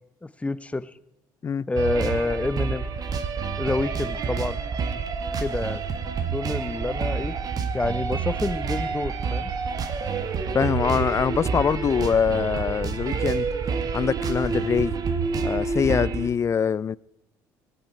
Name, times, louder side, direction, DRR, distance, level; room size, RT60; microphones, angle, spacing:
voice 1, 0.2-0.9 1.7-2.8 3.6-4.6 5.4-5.8 6.3-7.3 7.7-9.5, left 2 dB, 15° left, 0.9 m, -28 dB
sound 1, 1.8-16.3, right 5 dB, 50° right, 1.9 m, -28 dB
voice 2, 10.5-13.5 13.9-14.9 15.4-17.0, left 7 dB, 35° left, 0.5 m, -23 dB
18.5 x 17.0 x 4.5 m
supercardioid pair, 70°, 8 cm